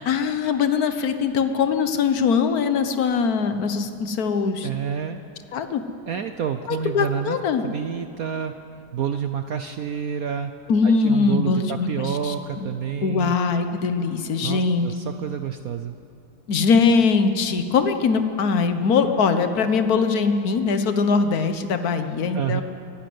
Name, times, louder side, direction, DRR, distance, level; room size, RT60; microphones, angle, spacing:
voice 1, 0.0-4.7 5.5-5.8 6.7-7.6 10.7-12.3 13.0-14.9 16.5-22.6, left 5 dB, 50° left, 8 dB, 1.4 m, -21 dB
voice 2, 4.6-5.2 6.1-7.4 7.6-8.5 8.9-10.5 10.8-13.3 14.4-16.0 22.3-22.6, right 8 dB, 65° right, 8 dB, 0.8 m, -28 dB
23.5 x 11.5 x 9.4 m, 2.5 s
omnidirectional pair, 2.3 m